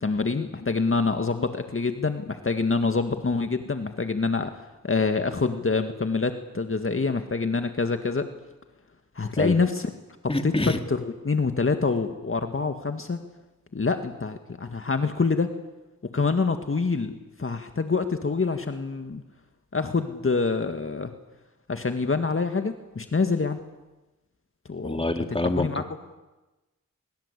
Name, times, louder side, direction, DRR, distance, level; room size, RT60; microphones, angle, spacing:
voice 1, 0.0-8.3 9.2-9.9 10.4-13.2 13.7-15.5 16.1-19.2 19.7-21.1 21.7-23.6 24.7-25.0 25.6-25.8, left 4 dB, 45° left, 6 dB, 2.0 m, -26 dB
voice 2, 10.3-10.8 24.8-25.8, left 2 dB, 20° left, 6 dB, 2.9 m, -26 dB
23.5 x 23.0 x 8.4 m, 1.1 s
cardioid pair, 50°, 30 cm